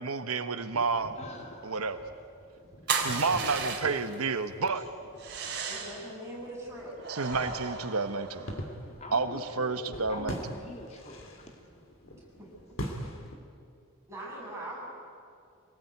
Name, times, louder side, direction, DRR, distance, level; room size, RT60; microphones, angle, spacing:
voice 1, 0.0-1.1 1.6-2.0 3.0-4.8 7.1-8.5 9.1-10.4, right 4 dB, 90° right, 9 dB, 1.2 m, -30 dB
sound 1, 0.7-13.4, equal, 65° left, 2.8 m, -44 dB
voice 2, 1.2-2.0 3.8-4.2 9.0-11.5, left 1 dB, 30° left, 1 dB, 2.7 m, -44 dB
sound 2, 2.9-4.1 5.2-6.1 7.0-8.7, right 5 dB, 50° right, 3.5 m, -34 dB
voice 3, 5.6-7.0 12.1-12.5 14.1-14.8, right 1 dB, 15° right, -4 dB, 7.6 m, -41 dB
26.0 x 18.5 x 9.6 m, 2.4 s
head